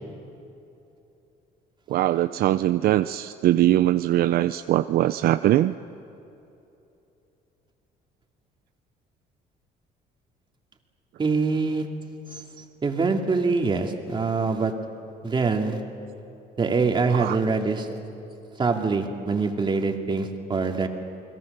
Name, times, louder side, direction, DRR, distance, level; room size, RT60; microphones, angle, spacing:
voice 1, 1.9-5.8 17.1-17.4, right 14 dB, 65° right, 11 dB, 0.5 m, -21 dB
voice 2, 11.2-11.9 12.8-14.7 15.2-15.8 16.6-17.9 18.6-20.9, right 4 dB, 30° right, 3 dB, 2.5 m, -24 dB
29.0 x 21.0 x 6.8 m, 2.9 s
cardioid pair, 110°, 17 cm